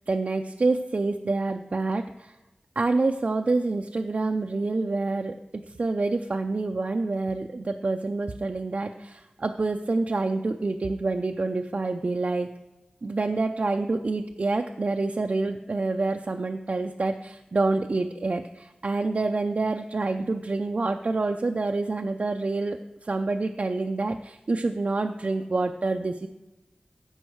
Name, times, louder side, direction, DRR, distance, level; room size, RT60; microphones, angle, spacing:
voice 1, 0.1-2.4 2.8-12.5 13.0-26.3, right 3 dB, 55° right, 3 dB, 0.5 m, -27 dB
15.5 x 5.4 x 4.7 m, 1.0 s
wide cardioid pair, 85°, 3 cm